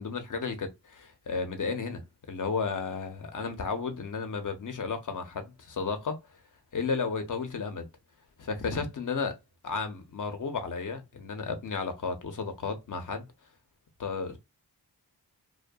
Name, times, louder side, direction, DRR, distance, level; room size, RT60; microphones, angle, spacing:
voice 1, 0.0-6.2 6.7-7.9 8.4-9.4 9.6-13.3 14.0-14.4, left 4 dB, 50° left, 0.7 m, -33 dB
2.6 x 2.2 x 2.3 m
cardioid pair, 60°, 42 cm